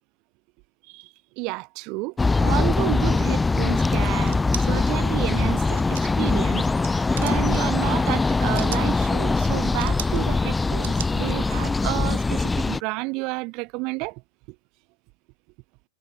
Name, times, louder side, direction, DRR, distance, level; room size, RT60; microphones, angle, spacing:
voice 1, 0.9-14.2, right 28 dB, 45° right, 3.3 m, -31 dB
sound 1, 2.2-12.8, left 3 dB, 10° left, 2.7 m, -22 dB
sound 2, 4.2-4.7 5.7-6.2 6.6-6.9 7.1-7.6 8.3-8.9 9.8-10.2 10.8-11.1, right 12 dB, 60° right, 6.8 m, -36 dB
figure-of-eight pair, 90°, 0 cm